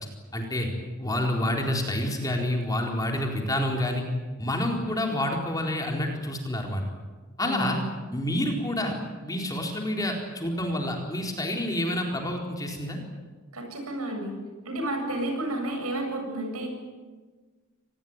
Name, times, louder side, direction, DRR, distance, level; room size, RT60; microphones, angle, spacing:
voice 1, 0.3-0.7 1.0-4.0 4.4-6.8 7.4-7.8 8.1-9.0 9.2-13.0, left 1 dB, 15° left, 1 dB, 4.2 m, -28 dB
voice 2, 7.4-7.7 13.5-14.4 14.7-16.7, right 1 dB, 85° right, 4 dB, 7.9 m, -31 dB
25.0 x 20.5 x 9.7 m, 1.4 s
head